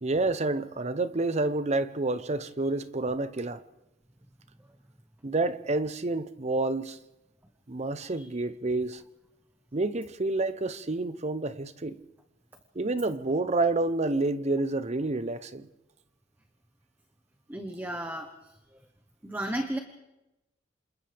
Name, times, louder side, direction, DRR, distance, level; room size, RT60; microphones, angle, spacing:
voice 1, 0.0-3.6 5.2-7.0 7.7-9.0 9.7-12.0 12.7-15.7, right 2 dB, 35° right, 0.8 m, -29 dB
voice 2, 17.5-18.8 19.2-19.8, right 1 dB, 10° right, 1.1 m, -35 dB
28.5 x 27.0 x 3.5 m
head